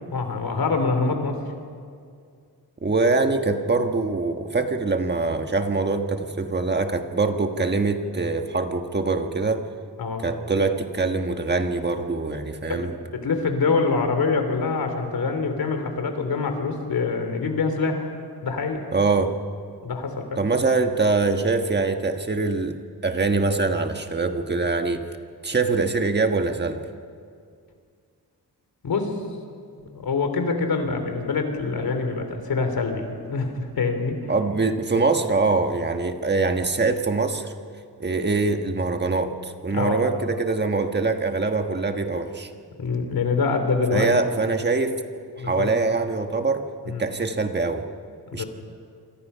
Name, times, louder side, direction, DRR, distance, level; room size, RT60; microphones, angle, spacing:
voice 1, 0.1-1.4 10.0-10.2 12.7-12.9 13.2-18.1 18.4-18.8 19.8-20.4 28.8-29.1 29.8-34.2 39.7-40.0 42.8-44.1 45.4-45.7 46.9-47.0 48.3-48.5, left 4 dB, 60° left, 6 dB, 3.3 m, -25 dB
voice 2, 2.8-9.7 10.2-12.9 18.9-19.4 20.4-25.0 25.4-26.8 34.3-37.5 38.0-42.5 43.9-45.0 45.4-47.8 48.3-48.4, right 3 dB, 25° right, 6 dB, 1.4 m, -23 dB
27.5 x 25.5 x 5.6 m, 2.2 s
wide cardioid pair, 165°, 40 cm